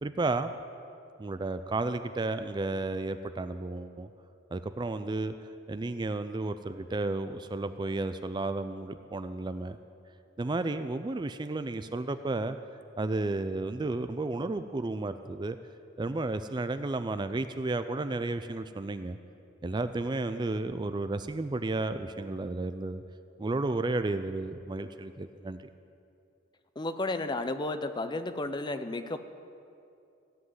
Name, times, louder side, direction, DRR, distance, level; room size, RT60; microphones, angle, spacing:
voice 1, 0.0-0.5 1.2-4.1 4.5-5.3 5.7-9.8 10.4-12.6 13.0-15.6 16.0-19.2 19.6-23.0 23.4-25.7, right 2 dB, 20° right, 10 dB, 0.4 m, -32 dB
voice 2, 26.8-29.2, left 2 dB, 20° left, 9 dB, 0.6 m, -32 dB
16.0 x 7.8 x 9.6 m, 2.6 s
head